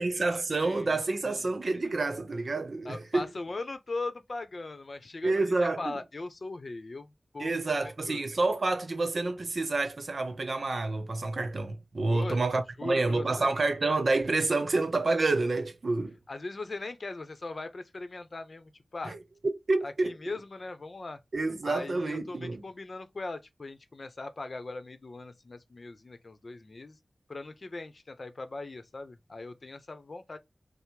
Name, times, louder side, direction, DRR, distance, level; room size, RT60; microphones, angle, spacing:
voice 1, 0.0-3.3 5.2-6.0 7.4-16.2 19.0-19.2 19.7-20.1 21.3-22.6, right 3 dB, 65° right, 0.8 m, -28 dB
voice 2, 0.6-1.0 1.2-1.5 2.8-7.5 8.1-8.2 12.1-12.4 12.8-13.5 16.3-19.2 19.8-21.2 21.6-27.0 27.3-30.4, left 3 dB, 55° left, 0.7 m, -39 dB
5.7 x 2.0 x 3.1 m
wide cardioid pair, 100°, 0 cm